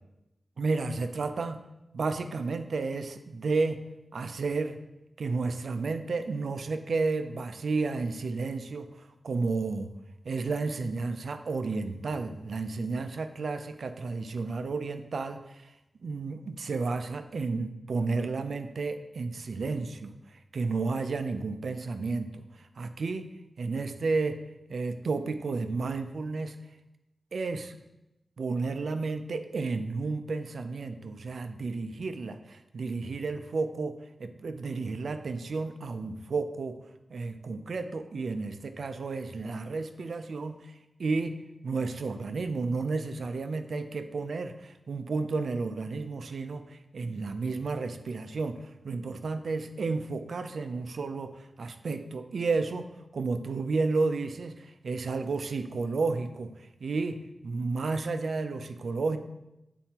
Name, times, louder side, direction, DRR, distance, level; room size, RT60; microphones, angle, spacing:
voice 1, 0.6-1.6 1.9-3.8 4.1-4.8 5.2-9.9 10.2-15.7 16.0-23.3 23.6-24.4 24.7-26.6 27.3-27.8 28.4-33.9 34.2-36.8 37.1-40.7 41.0-41.4 41.6-59.2, right 3 dB, 85° right, 9 dB, 0.4 m, -32 dB
9.0 x 4.4 x 2.9 m, 0.92 s
cardioid pair, 60°, 0 cm